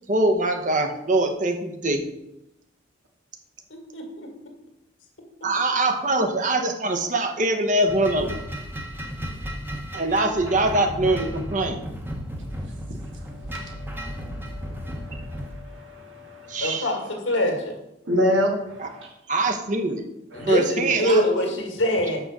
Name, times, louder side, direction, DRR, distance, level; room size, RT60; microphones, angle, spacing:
voice 1, 0.1-2.0 5.4-8.4 9.9-11.8 16.5-16.9 18.8-18.9 19.3-20.0 20.5-21.2, right 2 dB, 40° right, 5 dB, 0.9 m, -23 dB
voice 2, 3.9-4.3 16.6-17.8 20.3-22.2, left 1 dB, 85° left, 2 dB, 2.0 m, -24 dB
sound 1, 7.9-15.5, equal, 10° right, 0.9 m, -34 dB
voice 3, 13.4-16.9 18.1-19.1 20.3-20.5, equal, 90° right, 1 dB, 2.0 m, -29 dB
6.1 x 5.9 x 6.7 m, 0.88 s
head